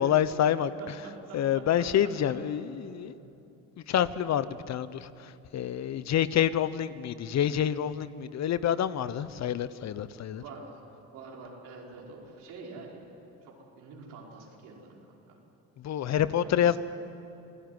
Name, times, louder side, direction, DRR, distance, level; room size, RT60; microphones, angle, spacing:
voice 1, 0.0-0.9 1.3-3.2 3.9-10.4 15.8-16.8, left 10 dB, 55° left, 1.0 m, -27 dB
voice 2, 0.8-2.1 3.1-3.2 10.4-10.7 11.1-13.1 13.4-15.4 16.1-16.5, right 3 dB, 85° right, 5.3 m, -46 dB
27.5 x 17.0 x 9.7 m
supercardioid pair, 80°, 32 cm